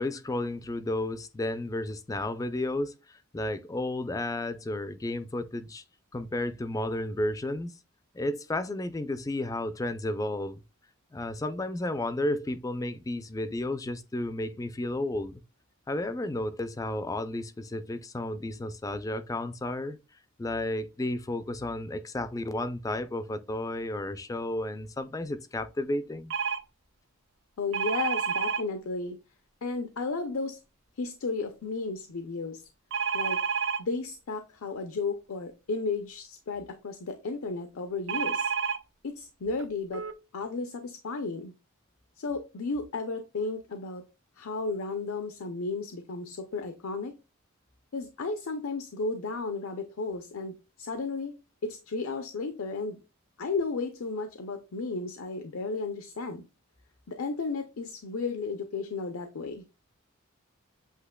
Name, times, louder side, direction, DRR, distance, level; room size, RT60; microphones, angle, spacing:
voice 1, 0.0-5.8 6.1-7.7 8.1-10.6 11.1-15.4 15.9-20.0 20.4-26.3, left 1 dB, 15° left, 0.3 m, -32 dB
sound 1, 26.3-26.6 27.7-28.6 32.9-33.8 38.1-38.8 39.6-39.7 39.9-40.1, right 6 dB, 60° right, 0.5 m, -29 dB
voice 2, 27.6-29.2 29.6-30.6 31.0-32.6 33.1-33.4 33.8-38.5 39.0-40.0 40.3-41.5 42.2-44.0 44.4-47.1 47.9-51.3 51.6-53.0 53.4-56.4 57.1-59.6, left 3 dB, 80° left, 0.5 m, -33 dB
8.1 x 2.8 x 2.2 m
head